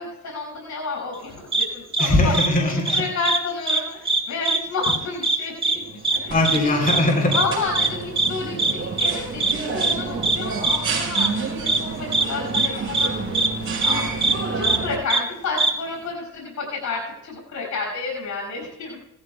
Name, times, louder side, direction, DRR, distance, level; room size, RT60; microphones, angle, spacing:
voice 1, 0.0-2.3 2.9-6.8 7.3-13.3 13.8-14.1 14.5-19.0, left 3 dB, 70° left, -1 dB, 5.7 m, -30 dB
sound 1, 1.5-1.6 1.9-2.1 2.3-2.5 2.8-3.4 3.6-3.8 4.0-4.6 4.8-5.0 5.2-5.4 5.6-5.7 6.0-6.2 6.4-6.6 6.9-7.0 7.3-7.4 7.7-7.9 8.2-8.3 8.6-8.7 9.0-9.1 9.4-9.5 9.8-9.9 10.2-10.4 10.6-10.8 11.1-11.3 11.7-11.8 12.1-12.2 12.5-12.7 12.9-13.1 13.3-13.5 13.8-13.9 14.2-14.3 14.6-14.8 15.1-15.2 15.6-15.7, right 3 dB, 20° right, 1.8 m, -20 dB
voice 2, 2.0-3.0 6.3-7.4, left 1 dB, 30° left, 0 dB, 3.6 m, -20 dB
sound 2, 5.7-15.0, right 4 dB, 45° right, 4.7 m, -30 dB
18.5 x 14.0 x 2.3 m, 0.91 s
cardioid pair, 90°, 30 cm